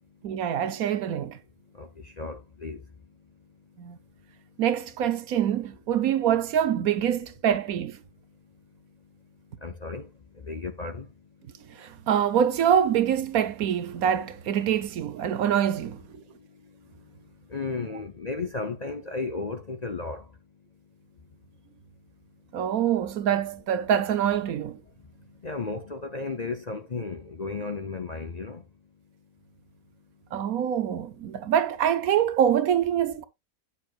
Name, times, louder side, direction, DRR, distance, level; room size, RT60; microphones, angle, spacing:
voice 1, 0.2-1.4 3.8-4.0 4.6-8.0 11.8-16.0 22.5-24.8 30.3-33.2, right 9 dB, 75° right, 1.2 m, -25 dB
voice 2, 1.8-2.8 9.6-10.1 10.4-11.1 17.5-20.2 25.4-28.6, left 3 dB, 40° left, 0.6 m, -34 dB
10.5 x 7.0 x 2.4 m
omnidirectional pair, 1.6 m